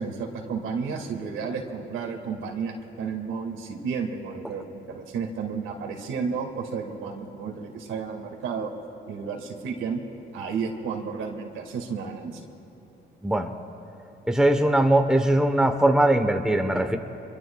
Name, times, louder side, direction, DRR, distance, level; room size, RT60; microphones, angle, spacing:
voice 1, 0.0-8.7 9.1-10.0 10.3-12.5, right 5 dB, 85° right, 2 dB, 2.1 m, -32 dB
voice 2, 13.2-13.5 14.3-17.0, right 1 dB, 5° right, 6 dB, 0.9 m, -21 dB
26.5 x 23.0 x 2.3 m, 3.0 s
cardioid pair, 90°, 20 cm